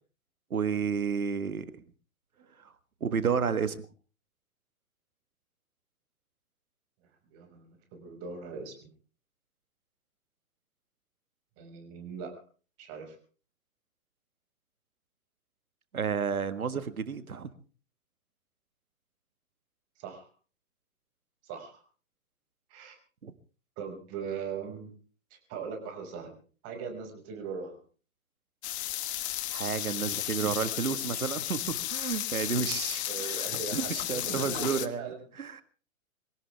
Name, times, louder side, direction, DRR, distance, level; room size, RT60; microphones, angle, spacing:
voice 1, 0.5-1.7 3.0-3.9 15.9-17.5 23.2-23.3 29.5-33.4 33.7-35.6, right 6 dB, 90° right, 13 dB, 1.7 m, -31 dB
voice 2, 7.3-8.9 11.6-12.3 12.8-13.2 20.0-20.3 21.4-21.8 22.7-23.0 23.8-24.9 25.5-26.3 26.6-27.8 33.1-35.6, right 5 dB, 35° right, 4 dB, 5.8 m, -40 dB
sound 1, 28.6-34.9, left 14 dB, 50° left, 1.7 m, -34 dB
23.5 x 17.5 x 3.5 m, 0.38 s
hypercardioid pair, 125°, 42 cm